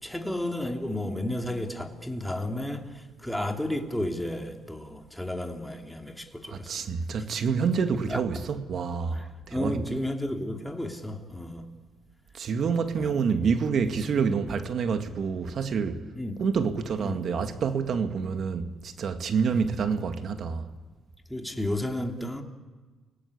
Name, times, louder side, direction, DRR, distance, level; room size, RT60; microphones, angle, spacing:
voice 1, 0.0-6.9 8.1-8.2 9.1-11.6 13.0-13.2 14.1-14.3 16.2-16.5 17.0-17.2 19.5-19.6 21.3-22.4, left 1 dB, 5° left, 3.0 m, -33 dB
voice 2, 6.5-10.0 12.3-16.1 16.4-20.7, right 5 dB, 60° right, 2.0 m, -28 dB
29.5 x 19.0 x 8.6 m
cardioid pair, 90°, 0 cm